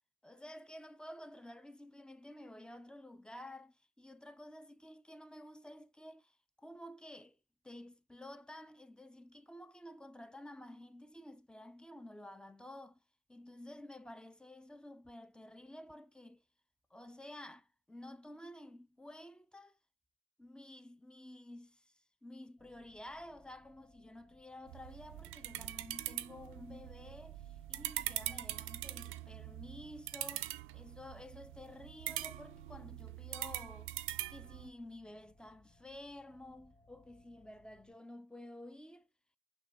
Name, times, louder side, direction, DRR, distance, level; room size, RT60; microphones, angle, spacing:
voice 1, 0.2-7.4 7.6-13.0 13.3-16.4 16.9-19.8 20.4-33.9 34.3-39.1, left 1 dB, 5° left, 0.4 m, -52 dB
sound 1, 22.6-37.9, left 2 dB, 20° left, 2.0 m, -67 dB
sound 2, 24.7-34.7, right 15 dB, 90° right, 0.4 m, -43 dB
6.2 x 2.3 x 3.5 m
cardioid pair, 90°, 20 cm